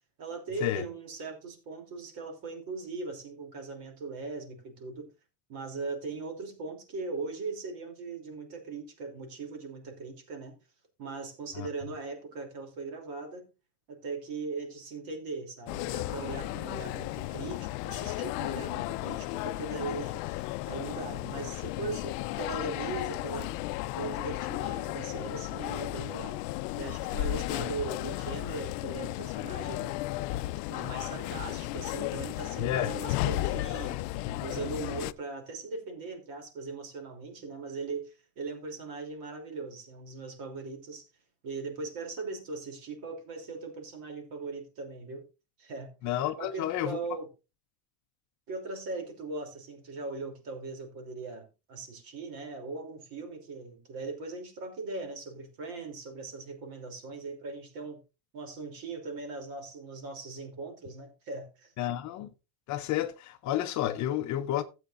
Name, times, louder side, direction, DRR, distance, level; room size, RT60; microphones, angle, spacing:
voice 1, 0.2-5.1 5.5-10.5 11.0-13.4 13.9-23.5 23.9-26.4 26.7-30.0 30.7-41.1 41.4-45.2 45.6-45.9 46.4-47.3 48.5-58.0 58.3-61.7, right 3 dB, 45° right, 3.1 m, -39 dB
sound 1, 15.7-35.1, left 17 dB, 90° left, 0.6 m, -34 dB
voice 2, 32.6-33.0 34.2-34.4 46.0-47.0 61.8-62.3 62.7-64.6, left 12 dB, 40° left, 0.7 m, -31 dB
15.5 x 8.1 x 2.5 m
cardioid pair, 165°, 47 cm